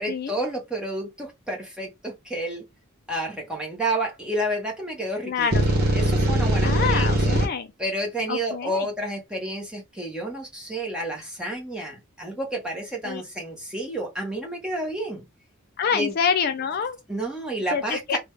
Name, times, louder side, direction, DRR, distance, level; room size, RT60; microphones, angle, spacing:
voice 1, 0.0-2.6 3.1-7.4 7.8-15.3 15.9-16.1 17.1-18.2, right 1 dB, 5° right, 1.1 m, -30 dB
voice 2, 5.2-5.6 6.6-7.7 8.3-8.9 13.0-13.2 15.8-17.0 17.7-18.2, left 6 dB, 45° left, 0.3 m, -26 dB
sound 1, 5.5-7.5, right 1 dB, 50° right, 1.1 m, -21 dB
3.7 x 2.3 x 3.2 m
head